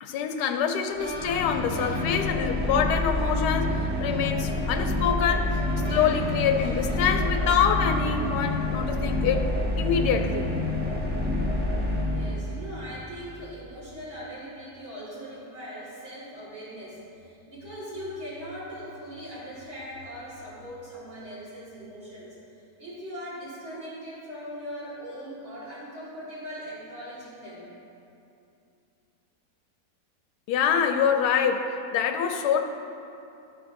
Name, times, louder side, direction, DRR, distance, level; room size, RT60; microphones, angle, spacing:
voice 1, 0.0-5.6 5.9-9.5 9.8-10.5 30.5-32.7, left 7 dB, 90° left, 6 dB, 1.2 m, -25 dB
sound 1, 1.0-12.8, left 1 dB, 10° right, 0.7 m, -28 dB
sound 2, 1.0-9.2, equal, 50° right, 1.4 m, -43 dB
voice 2, 12.0-22.4 22.8-27.7, equal, 65° right, -11 dB, 2.4 m, -40 dB
13.0 x 5.6 x 2.6 m, 2.7 s
omnidirectional pair, 1.7 m